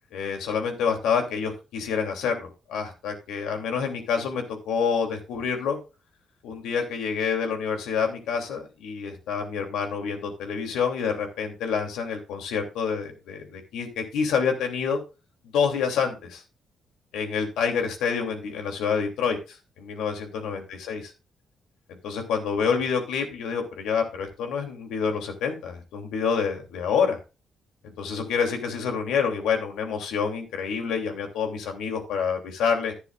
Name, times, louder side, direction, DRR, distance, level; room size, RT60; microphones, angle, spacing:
voice 1, 0.1-5.8 6.4-15.0 15.5-16.4 17.1-21.1 21.9-27.2 27.8-32.9, left 6 dB, 85° left, 3 dB, 2.9 m, -27 dB
11.5 x 11.5 x 2.5 m, 0.30 s
cardioid pair, 80°, 0 cm